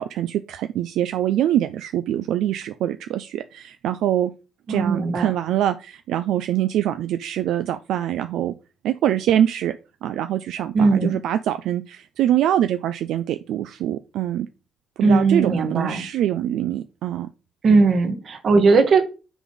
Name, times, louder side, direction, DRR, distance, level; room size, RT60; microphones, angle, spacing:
voice 1, 0.0-4.3 4.7-8.5 8.8-14.5 15.0-17.3, right 11 dB, 85° right, 10 dB, 0.4 m, -24 dB
voice 2, 4.7-5.3 10.7-11.2 15.0-16.0 17.6-19.0, right 4 dB, 55° right, 6 dB, 1.6 m, -18 dB
5.9 x 4.0 x 5.2 m, 0.31 s
cardioid pair, 90°, 0 cm